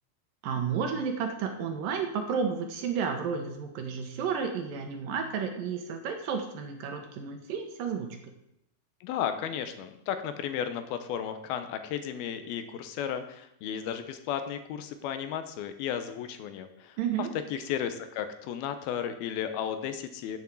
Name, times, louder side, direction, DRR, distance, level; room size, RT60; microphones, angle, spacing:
voice 1, 0.4-8.2 17.0-17.3, right 6 dB, 70° right, 5 dB, 2.7 m, -32 dB
voice 2, 9.0-20.4, left 9 dB, 80° left, 9 dB, 2.7 m, -34 dB
8.4 x 7.1 x 7.6 m, 0.78 s
omnidirectional pair, 4.4 m